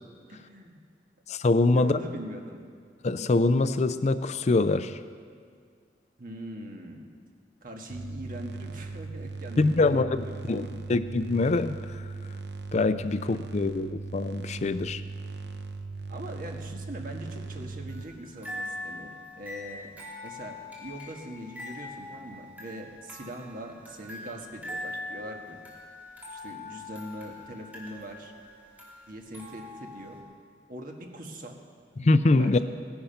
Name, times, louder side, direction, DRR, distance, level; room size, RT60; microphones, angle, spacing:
voice 1, 0.3-0.8 1.7-2.6 6.2-7.1 7.6-10.8 13.5-13.7 16.1-19.9 20.2-25.6 26.3-28.3 29.1-30.2 30.7-31.6 32.4-32.6, right 1 dB, 55° right, 2 dB, 1.6 m, -41 dB
voice 2, 1.3-2.0 3.0-5.0 9.6-12.0 12.7-15.0 32.0-32.6, left 3 dB, 40° left, 12 dB, 0.4 m, -24 dB
sound 1, 7.9-18.0, right 3 dB, 70° right, 0.9 m, -39 dB
sound 2, 17.9-30.2, left 2 dB, 10° right, 2.7 m, -42 dB
16.5 x 10.5 x 5.8 m, 2.1 s
head